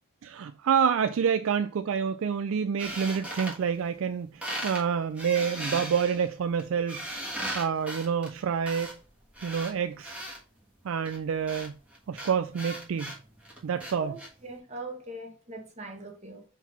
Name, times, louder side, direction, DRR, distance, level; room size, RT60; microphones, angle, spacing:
voice 1, 0.2-8.9 9.4-10.2 10.8-11.8 12.1-13.1 13.6-14.1, right 7 dB, 60° right, 0.3 m, -28 dB
sound 1, 2.8-4.1 4.4-4.8 5.2-10.4 11.0-14.3, right 1 dB, 5° right, 1.4 m, -38 dB
voice 2, 14.4-16.4, right 1 dB, 30° right, 1.4 m, -40 dB
4.6 x 3.9 x 5.6 m
head